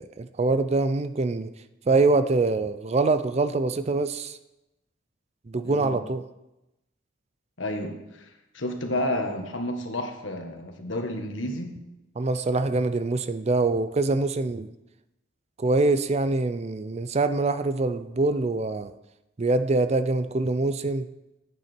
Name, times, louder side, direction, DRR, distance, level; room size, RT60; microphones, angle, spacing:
voice 1, 0.0-1.5 1.9-4.4 5.5-6.2 12.2-14.7 15.6-18.9 19.4-21.1, right 3 dB, 35° right, 12 dB, 0.4 m, -24 dB
voice 2, 5.6-6.0 7.6-8.3 8.5-11.8, left 1 dB, 75° left, 4 dB, 1.5 m, -31 dB
11.0 x 8.8 x 4.4 m, 0.93 s
head